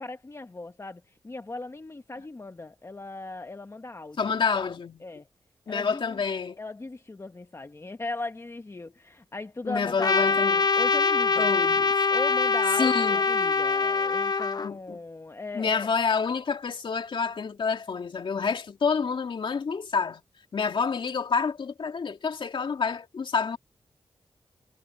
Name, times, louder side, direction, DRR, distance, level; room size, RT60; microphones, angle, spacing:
voice 1, 0.0-4.2 4.5-4.7 5.0-5.3 5.7-6.2 6.6-11.5 12.1-15.9, left 2 dB, 30° left, 1.3 m, -38 dB
voice 2, 4.2-5.0 5.7-6.6 9.6-10.6 11.4-11.9 12.8-13.2 14.6-15.0 15.5-20.2 20.5-23.6, left 5 dB, 65° left, 2.6 m, -28 dB
Trumpet, 10.0-14.7, left 4 dB, 45° left, 1.0 m, -23 dB
cardioid pair, 65°, 9 cm